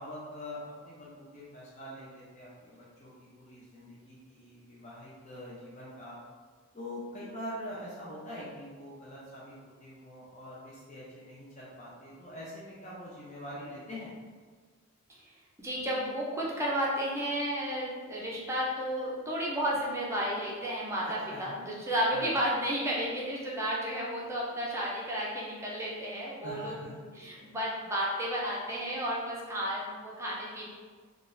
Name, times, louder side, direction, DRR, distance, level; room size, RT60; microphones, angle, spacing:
voice 1, 0.0-6.2 6.7-14.1 21.0-21.5 22.1-22.3 26.4-27.4, left 1 dB, 35° left, -7 dB, 0.6 m, -44 dB
voice 2, 15.6-26.7 27.0-30.7, equal, 15° right, -5 dB, 0.5 m, -32 dB
3.7 x 2.3 x 2.5 m, 1.5 s
head